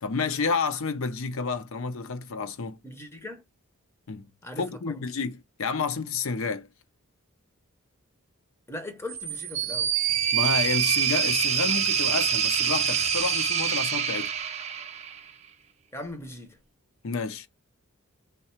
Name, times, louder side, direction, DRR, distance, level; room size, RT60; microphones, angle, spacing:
voice 1, 0.0-2.8 4.1-4.3 4.6-6.7 10.3-14.3 17.0-17.5, left 4 dB, 65° left, 0.6 m, -30 dB
voice 2, 2.8-3.4 4.4-5.0 8.7-9.9 15.9-16.6, left 1 dB, 10° left, 0.6 m, -39 dB
sound 1, 9.1-15.3, right 8 dB, 30° right, 0.5 m, -26 dB
3.6 x 2.2 x 4.3 m
head